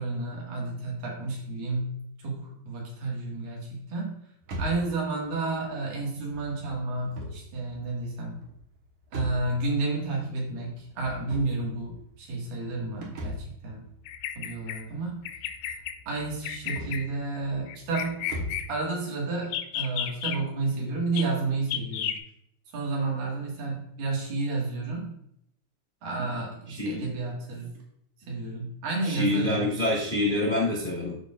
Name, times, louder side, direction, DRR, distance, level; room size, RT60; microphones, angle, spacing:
voice 1, 0.0-4.2 4.6-8.4 9.1-13.9 14.4-15.2 16.1-18.3 18.7-22.2 22.7-25.1 26.0-27.7 28.3-29.6, right 3 dB, 85° right, -3 dB, 3.5 m, -31 dB
sound 1, 4.4-18.8, equal, 65° right, 2.4 m, -41 dB
Bird vocalization bird call bird song, 14.1-14.8 15.3-15.9 16.4-17.0 17.7-18.7 19.4-20.4 21.2-21.3 21.7-22.2, left 10 dB, 85° left, 2.3 m, -32 dB
voice 2, 26.8-27.1 29.0-31.1, left 2 dB, 35° left, -6 dB, 0.6 m, -26 dB
13.0 x 4.4 x 2.4 m, 0.74 s
omnidirectional pair, 3.9 m